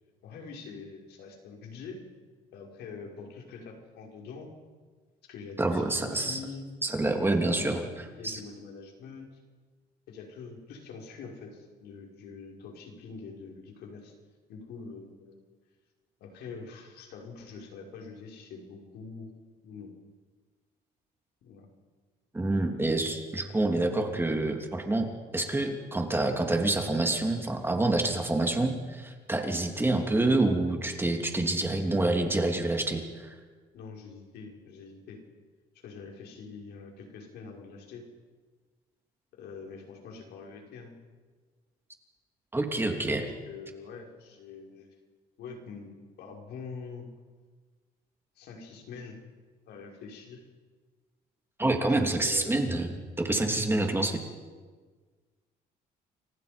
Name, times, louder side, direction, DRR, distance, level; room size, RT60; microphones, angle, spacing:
voice 1, 0.2-2.0 2.5-4.5 5.3-6.7 7.2-7.9 8.2-9.3 10.1-14.1 14.5-15.4 16.2-19.3 19.6-19.9 21.4-21.7 29.8-30.0 33.7-35.2 35.8-38.1 39.3-41.0 42.6-44.9 45.4-45.9 46.2-47.1 48.4-49.2 49.6-50.4 51.7-52.6, left 5 dB, 75° left, 1 dB, 5.8 m, -44 dB
voice 2, 5.6-6.4 6.8-7.8 8.2-8.4 22.3-33.3 42.5-43.2 51.6-52.9 53.2-54.2, right 2 dB, 15° right, 3 dB, 3.2 m, -27 dB
30.0 x 25.0 x 5.4 m, 1.5 s
cardioid pair, 110°, 17 cm